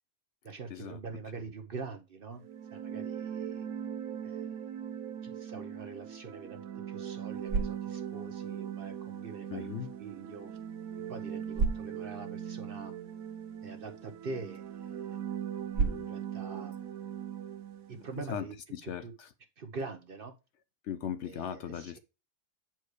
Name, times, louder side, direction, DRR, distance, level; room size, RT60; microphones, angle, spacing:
voice 1, 0.4-2.4 2.7-3.7 4.2-4.8 5.3-10.5 11.1-12.9 13.6-15.2 16.1-16.8 17.9-18.5 18.8-19.1 19.6-20.3 21.2-22.0, right 4 dB, 50° right, 0.8 m, -44 dB
sound 1, 2.4-18.1, right 9 dB, 85° right, 1.2 m, -40 dB
sound 2, 7.1-18.2, right 4 dB, 65° right, 1.2 m, -39 dB
voice 2, 9.5-9.9 15.8-16.1 18.3-18.5 18.7-19.3 20.8-22.0, left 9 dB, 65° left, 0.8 m, -38 dB
8.1 x 4.5 x 4.8 m
omnidirectional pair, 1.4 m